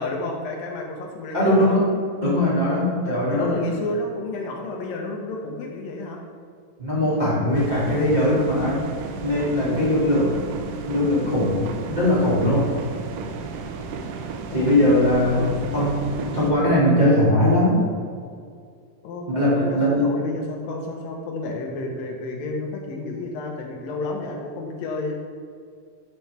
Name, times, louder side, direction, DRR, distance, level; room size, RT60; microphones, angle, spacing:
voice 1, 0.0-1.8 3.1-6.3 9.8-10.2 14.5-14.8 15.2-15.6 19.0-25.1, left 2 dB, 85° left, 1 dB, 2.8 m, -31 dB
voice 2, 1.3-3.7 6.8-8.9 9.2-10.4 10.8-12.7 14.5-17.8 19.3-20.1, left 1 dB, 15° right, -9 dB, 1.7 m, -20 dB
sound 1, 7.5-16.5, right 5 dB, 80° right, 2.3 m, -33 dB
11.0 x 6.2 x 3.4 m, 2.2 s
omnidirectional pair, 3.9 m